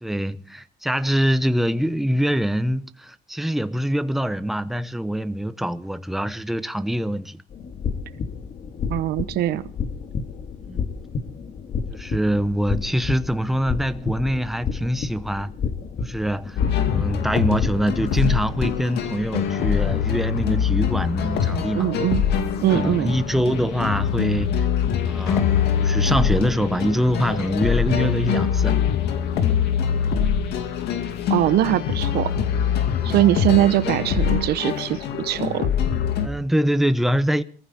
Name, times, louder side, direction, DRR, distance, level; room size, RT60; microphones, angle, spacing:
voice 1, 0.0-7.4 10.6-10.9 11.9-15.5 16.0-16.6 16.9-21.9 22.5-24.7 25.0-25.5 25.8-28.8 32.9-33.2 36.2-37.4, equal, ahead, 0.9 m, -24 dB
sound 1, 7.5-18.8, left 5 dB, 50° left, 2.0 m, -31 dB
voice 2, 8.9-9.7 21.7-22.2 22.6-23.1 31.3-32.3 33.0-35.7, right 14 dB, 75° right, 1.0 m, -21 dB
sound 2, 16.6-36.3, left 8 dB, 80° left, 2.2 m, -23 dB
22.5 x 14.5 x 4.3 m
cardioid pair, 110°, 17 cm